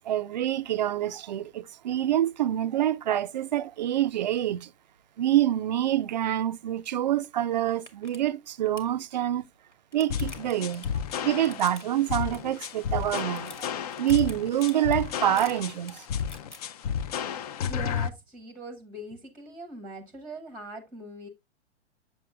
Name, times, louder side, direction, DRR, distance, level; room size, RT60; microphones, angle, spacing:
voice 1, 0.0-4.7 5.2-9.4 9.9-10.9 11.2-13.7 14.0-16.1, right 12 dB, 40° right, 0.4 m, -26 dB
sound 1, 7.2-7.3 7.7-8.2 8.5-8.9 9.6-12.1 12.3-12.7 13.0-16.6, left 2 dB, 90° left, 1.7 m, -47 dB
sound 2, 10.1-18.1, left 8 dB, 35° left, 0.5 m, -32 dB
voice 2, 17.6-21.3, right 1 dB, 5° right, 0.8 m, -41 dB
7.8 x 7.2 x 2.2 m
figure-of-eight pair, 110°, 35 cm